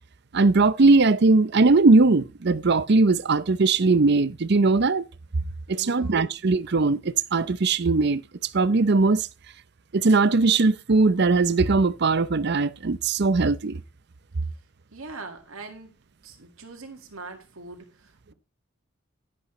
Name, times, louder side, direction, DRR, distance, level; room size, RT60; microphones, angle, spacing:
voice 1, 0.3-5.1 5.7-9.3 9.9-13.8, right 3 dB, 55° right, 0.6 m, -20 dB
voice 2, 5.7-6.4 14.9-15.9 16.2-18.3, right 3 dB, 85° right, 1.9 m, -42 dB
11.0 x 11.0 x 3.1 m
head